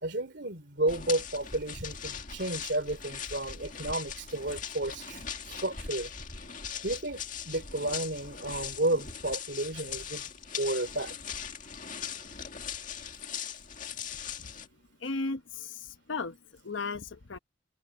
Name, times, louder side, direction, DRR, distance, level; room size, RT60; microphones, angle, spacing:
voice 1, 0.0-6.1 6.8-10.2 10.6-11.1, right 2 dB, 60° right, 3.4 m, -32 dB
sound 1, 0.9-14.7, left 7 dB, 45° left, 2.1 m, -40 dB
voice 2, 15.0-17.4, left 3 dB, 85° left, 0.9 m, -36 dB
head